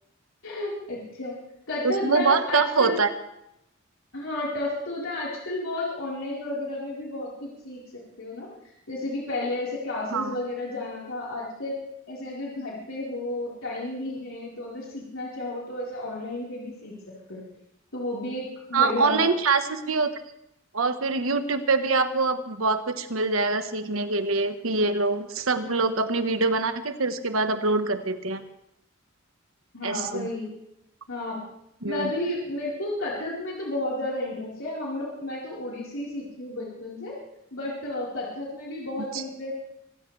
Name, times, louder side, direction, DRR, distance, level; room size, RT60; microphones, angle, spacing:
voice 1, 0.4-1.3 1.7-3.0 4.1-8.5 8.9-11.8 12.1-16.9 17.3-17.4 17.9-19.2 29.7-30.5 31.1-31.4 31.8-37.2 37.5-39.5, left 1 dB, 75° left, -5 dB, 4.5 m, -32 dB
voice 2, 1.8-3.1 10.1-10.3 18.7-20.1 20.7-28.4 29.8-30.3 31.8-32.1 39.1-39.2, right 3 dB, 80° right, 8 dB, 1.4 m, -24 dB
25.0 x 16.5 x 3.4 m, 0.82 s
head